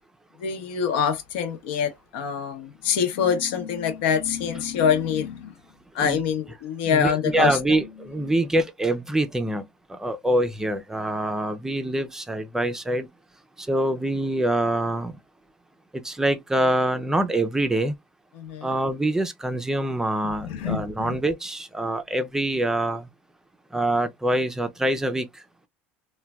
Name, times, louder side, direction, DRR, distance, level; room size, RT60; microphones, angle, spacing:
voice 1, 0.4-5.5 5.9-7.8 18.3-18.7 20.2-21.1, left 7 dB, 80° left, 0.8 m, -25 dB
voice 2, 6.9-13.1 13.6-15.2 16.0-17.9 18.6-23.1 23.7-25.4, right 1 dB, 10° right, 0.5 m, -25 dB
3.2 x 2.2 x 2.2 m
supercardioid pair, 110°, 6 cm